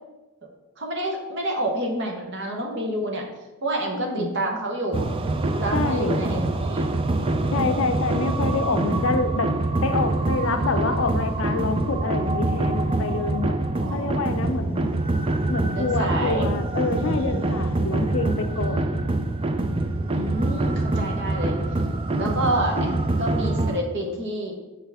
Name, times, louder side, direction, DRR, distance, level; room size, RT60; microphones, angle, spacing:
voice 1, 0.8-3.2 3.6-5.1 5.4-6.8 7.4-7.9 13.8-14.5 15.7-16.5 17.0-17.8 20.1-21.6 22.2-24.6, right 1 dB, 50° right, 1 dB, 1.2 m, -29 dB
voice 2, 3.9-4.4 5.7-6.3 7.5-9.5 9.8-13.6 13.9-14.9 15.5-19.1 22.1-23.0, left 3 dB, 60° left, 8 dB, 0.5 m, -27 dB
Strange Dance, 4.9-23.8, right 2 dB, 25° right, 0.3 m, -25 dB
6.4 x 5.8 x 3.5 m, 1.1 s
head